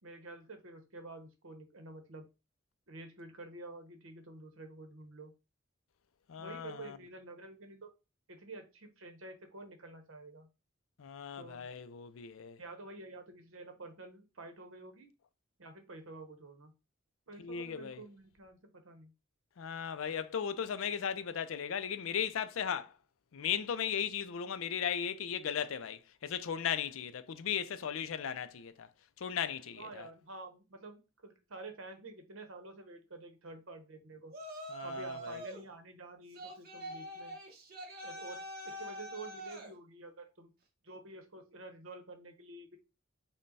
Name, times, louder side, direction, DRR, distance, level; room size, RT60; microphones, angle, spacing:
voice 1, 0.0-2.3 2.9-5.3 6.4-7.9 8.3-10.5 11.3-11.7 12.6-15.1 15.6-16.7 17.3-19.1 29.8-34.3 34.8-37.4 38.0-38.4 38.6-40.5 40.8-42.8, right 2 dB, 75° right, 0.9 m, -49 dB
voice 2, 6.3-7.0 11.0-12.6 17.4-18.0 19.6-22.9 23.3-28.9 29.2-30.1 34.7-35.4, left 8 dB, 75° left, 0.4 m, -37 dB
Yell, 34.3-35.7 36.3-39.7, right 1 dB, 45° right, 0.9 m, -44 dB
5.3 x 2.2 x 4.0 m
head